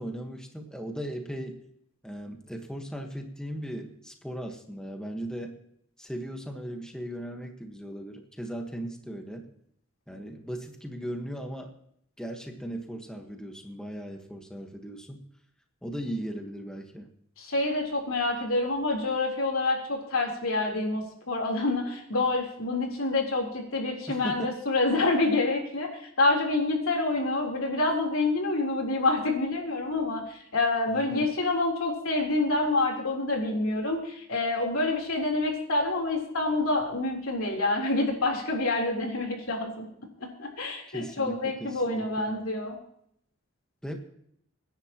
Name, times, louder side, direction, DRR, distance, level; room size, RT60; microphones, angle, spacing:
voice 1, 0.0-1.6 2.0-5.6 6.0-9.5 10.1-11.7 12.2-15.2 15.8-17.1 24.1-24.6 30.9-31.3 40.9-42.3 43.8-44.0, right 1 dB, 5° left, 3 dB, 1.4 m, -37 dB
voice 2, 17.4-39.9 40.4-42.8, left 2 dB, 90° left, 0 dB, 3.7 m, -27 dB
25.5 x 10.5 x 3.0 m, 0.71 s
head